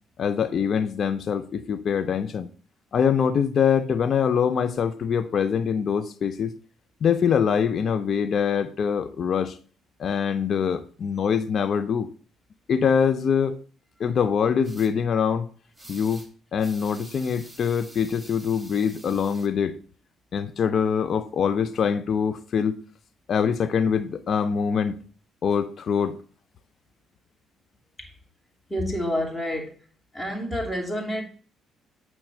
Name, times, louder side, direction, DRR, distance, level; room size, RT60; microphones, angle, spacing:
voice 1, 0.2-2.5 2.9-6.5 7.0-9.6 10.0-12.1 12.7-13.6 14.0-15.5 15.9-16.2 16.5-19.7 20.3-22.8 23.3-25.0 25.4-26.2, left 7 dB, 50° left, 0.6 m, -24 dB
sound 1, 14.6-14.9 15.7-16.3 16.6-19.5, right 1 dB, 10° right, 2.2 m, -47 dB
voice 2, 28.7-29.8 30.1-31.2, equal, 20° left, 3.0 m, -28 dB
8.6 x 3.2 x 6.2 m
hypercardioid pair, 50°, 0 cm